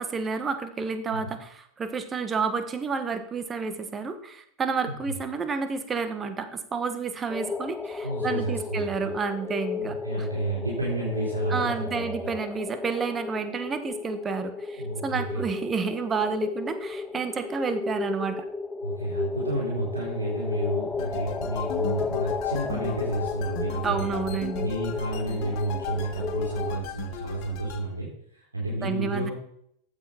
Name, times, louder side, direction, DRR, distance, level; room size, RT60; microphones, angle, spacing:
voice 1, 0.0-10.3 11.5-18.4 23.8-24.7 28.8-29.3, right 5 dB, 20° right, 9 dB, 1.5 m, -30 dB
sound 1, 7.3-26.8, left 4 dB, 10° left, 0.6 m, -34 dB
voice 2, 8.0-9.1 9.8-12.3 14.8-15.5 18.8-24.2 24.5-29.3, right 2 dB, 80° right, -4 dB, 4.0 m, -31 dB
sound 2, 21.0-27.8, left 11 dB, 40° left, 1.3 m, -37 dB
15.0 x 10.0 x 4.4 m, 0.70 s
figure-of-eight pair, 90°, 0 cm